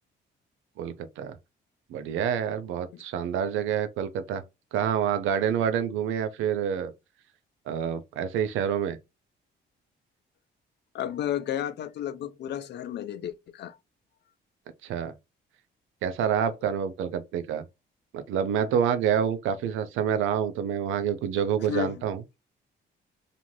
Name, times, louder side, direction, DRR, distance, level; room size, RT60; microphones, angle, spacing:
voice 1, 0.8-1.4 1.9-4.4 4.7-6.9 7.7-9.0 14.8-15.1 16.0-17.6 18.1-22.2, right 8 dB, 85° right, 0.5 m, -27 dB
voice 2, 10.9-13.8 16.3-16.5 21.7-22.0, left 10 dB, 60° left, 0.4 m, -33 dB
2.5 x 2.4 x 3.1 m
cardioid pair, 90°, 20 cm